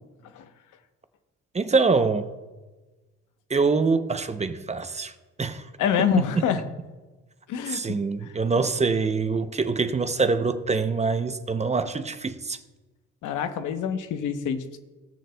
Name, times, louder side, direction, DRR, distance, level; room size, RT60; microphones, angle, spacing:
voice 1, 1.5-2.3 3.5-5.7 6.0-6.1 6.4-6.5 7.7-12.6, right 4 dB, 20° right, 0.6 m, -24 dB
voice 2, 5.8-6.6 7.5-7.8 8.2-8.3 13.2-14.8, left 8 dB, 85° left, 0.9 m, -26 dB
18.5 x 6.6 x 2.2 m
cardioid pair, 90°, 30 cm